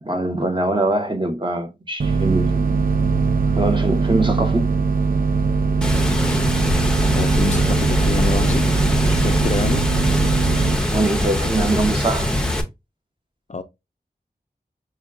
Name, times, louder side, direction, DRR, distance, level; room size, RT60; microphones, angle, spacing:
voice 1, 0.0-2.8 3.5-4.7 10.9-12.3, right 2 dB, 30° right, 0.9 m, -23 dB
sound 1, 2.0-10.8, right 4 dB, 60° right, 0.5 m, -20 dB
Water, 5.8-12.6, left 1 dB, 5° left, 0.7 m, -22 dB
voice 2, 7.0-8.7 9.0-9.9 13.5-13.6, left 4 dB, 45° left, 0.4 m, -27 dB
6.1 x 2.2 x 2.4 m
wide cardioid pair, 70°, 17 cm